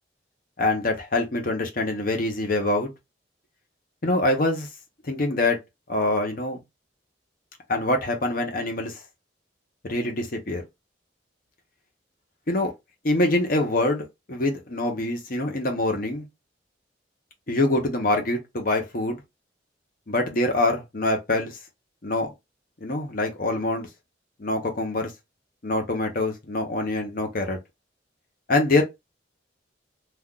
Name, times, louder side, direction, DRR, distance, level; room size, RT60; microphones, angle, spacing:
voice 1, 0.6-2.9 4.0-4.7 5.1-5.6 5.9-6.6 7.7-9.0 9.8-10.6 12.5-12.7 13.0-16.3 17.5-19.2 20.1-21.6 22.0-22.3 22.8-23.9 24.4-25.1 25.6-27.6 28.5-28.8, left 2 dB, 50° left, 0.9 m, -25 dB
2.5 x 2.3 x 3.7 m
head